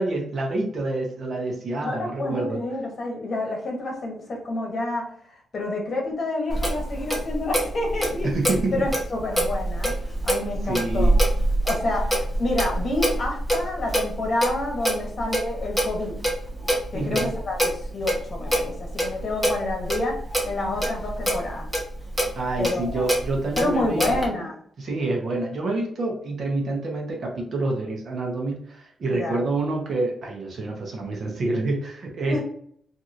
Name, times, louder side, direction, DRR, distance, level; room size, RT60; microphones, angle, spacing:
voice 1, 0.0-2.6 8.2-8.9 10.7-11.2 16.9-17.3 22.4-24.2 24.8-32.4, right 2 dB, 55° right, 0 dB, 0.9 m, -27 dB
voice 2, 1.8-5.1 5.5-8.3 8.7-9.9 10.2-11.1 11.6-16.2 16.9-21.7 22.6-23.1 23.6-24.6 29.1-29.4 32.3-32.4, left 2 dB, 45° left, 0 dB, 1.0 m, -28 dB
Clock, 6.5-24.3, right 1 dB, ahead, 0.9 m, -26 dB
2.9 x 2.6 x 2.5 m, 0.63 s
cardioid pair, 125°, 0 cm